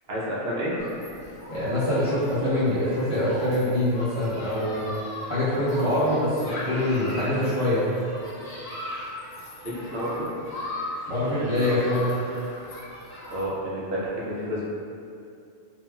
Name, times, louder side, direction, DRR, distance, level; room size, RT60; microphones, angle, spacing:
voice 1, 0.1-0.8 9.6-10.3 13.3-14.7, equal, 70° right, -7 dB, 0.8 m, -30 dB
Human group actions, 0.8-13.5, left 1 dB, 65° left, 0.9 m, -38 dB
voice 2, 1.5-4.9 5.3-7.9 11.1-12.1, left 1 dB, 30° left, -12 dB, 0.9 m, -24 dB
3.3 x 2.3 x 2.2 m, 2.5 s
omnidirectional pair, 1.1 m